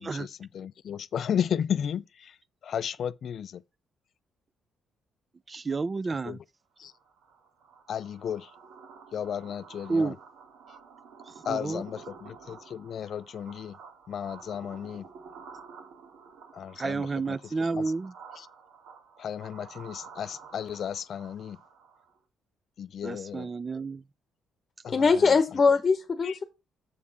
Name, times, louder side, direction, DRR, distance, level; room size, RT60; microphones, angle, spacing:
voice 1, 0.0-2.4 2.6-3.6 6.3-6.4 6.8-6.9 7.9-8.5 9.1-10.1 11.4-13.8 14.1-15.1 16.5-17.4 17.7-17.8 18.4-18.5 19.2-21.6 22.8-23.5 24.8-25.4 26.2-26.4, left 8 dB, 60° left, 0.3 m, -34 dB
voice 2, 5.5-6.4 9.9-10.2 11.3-11.8 16.8-18.1 23.0-24.0, right 4 dB, 30° right, 0.4 m, -30 dB
sound 1, 6.8-22.2, right 5 dB, 80° right, 2.2 m, -50 dB
voice 3, 24.9-26.4, left 4 dB, 35° left, 0.9 m, -22 dB
7.3 x 5.2 x 4.0 m
cardioid pair, 90°, 0 cm